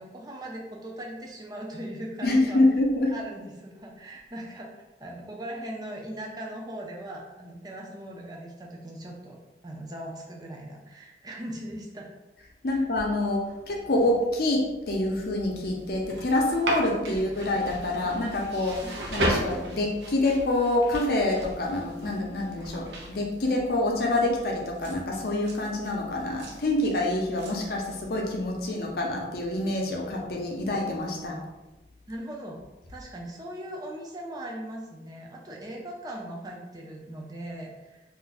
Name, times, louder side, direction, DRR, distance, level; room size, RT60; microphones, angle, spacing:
voice 1, 0.0-2.6 3.1-4.7 5.0-9.4 9.6-12.1 12.7-12.8 17.0-17.2 18.8-18.9 32.1-32.6 32.9-38.0, right 1 dB, 20° right, -1 dB, 0.5 m, -39 dB
voice 2, 2.2-3.1 12.6-18.8 19.1-31.4, left 1 dB, 60° left, 0 dB, 0.6 m, -26 dB
sound 1, 14.9-28.7, right 1 dB, 80° right, 0.7 m, -37 dB
2.5 x 2.2 x 4.0 m, 1.1 s
head